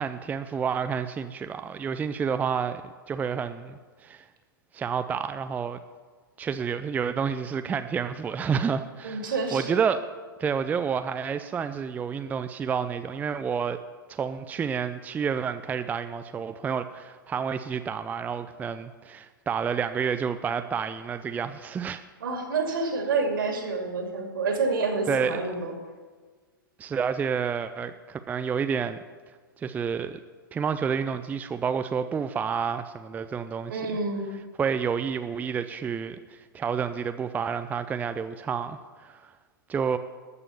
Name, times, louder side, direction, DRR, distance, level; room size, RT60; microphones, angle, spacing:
voice 1, 0.0-4.3 4.7-5.8 6.4-9.3 9.5-10.1 10.4-13.8 14.1-22.0 25.1-25.6 26.8-29.0 29.6-30.2 30.5-33.8 34.6-39.3 39.7-40.0, right 6 dB, 15° right, 10 dB, 0.4 m, -29 dB
voice 2, 9.0-9.8 22.2-25.7 33.7-34.3, right 3 dB, 65° right, 3 dB, 2.6 m, -28 dB
13.5 x 6.9 x 6.9 m, 1.4 s
figure-of-eight pair, 105°, 12 cm